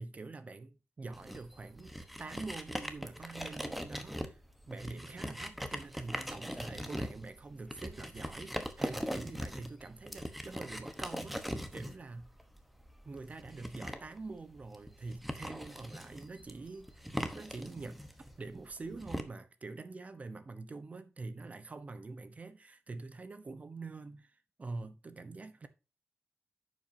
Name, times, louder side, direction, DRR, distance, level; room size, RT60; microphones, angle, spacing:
voice 1, 0.0-1.9 2.2-4.4 4.7-12.3 13.0-16.9 17.3-18.0 18.4-25.7, right 3 dB, 35° right, 0.9 m, -45 dB
sound 1, 1.1-19.2, equal, ahead, 1.0 m, -41 dB
10.0 x 7.6 x 2.7 m
wide cardioid pair, 150°, 4 cm